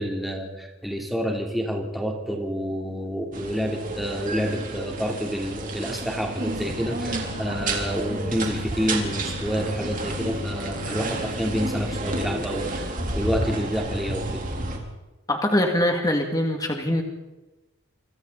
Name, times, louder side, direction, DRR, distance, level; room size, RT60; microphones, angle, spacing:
voice 1, 0.0-14.4, equal, ahead, 0 dB, 3.5 m, -28 dB
sound 1, 3.3-14.8, right 2 dB, 40° right, 3.8 m, -31 dB
sound 2, 6.5-12.9, left 1 dB, 80° left, 2.3 m, -36 dB
voice 2, 15.3-17.0, left 1 dB, 20° left, 2 dB, 2.6 m, -23 dB
28.0 x 26.5 x 4.2 m, 1.1 s
head